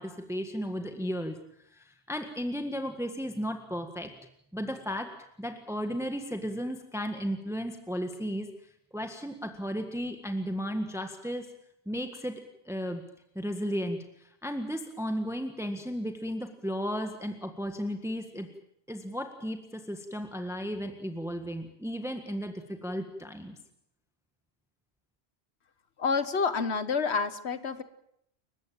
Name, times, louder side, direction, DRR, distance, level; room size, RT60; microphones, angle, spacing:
voice 1, 0.0-1.4 1.7-4.1 4.5-5.1 5.4-8.5 8.9-11.5 11.9-13.0 13.4-18.5 18.9-23.6, equal, 5° right, 6 dB, 1.7 m, -34 dB
voice 2, 26.0-27.8, left 5 dB, 80° left, 12 dB, 1.5 m, -28 dB
29.0 x 16.0 x 8.9 m, 0.76 s
omnidirectional pair, 1.1 m